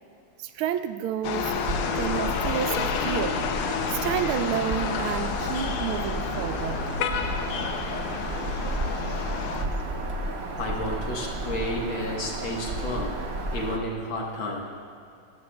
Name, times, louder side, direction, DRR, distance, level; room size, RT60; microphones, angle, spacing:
voice 1, 0.4-1.6 1.8-3.4 3.9-6.8, right 9 dB, 85° right, 10 dB, 1.5 m, -30 dB
sound 1, 1.2-9.7, left 7 dB, 85° left, 1.6 m, -30 dB
Bird vocalization bird call bird song, 1.5-13.8, right 2 dB, 45° right, 0.8 m, -32 dB
voice 2, 10.6-13.2 13.5-14.6, left 1 dB, 65° left, -1 dB, 2.1 m, -31 dB
18.0 x 14.0 x 2.3 m, 2.5 s
omnidirectional pair, 2.3 m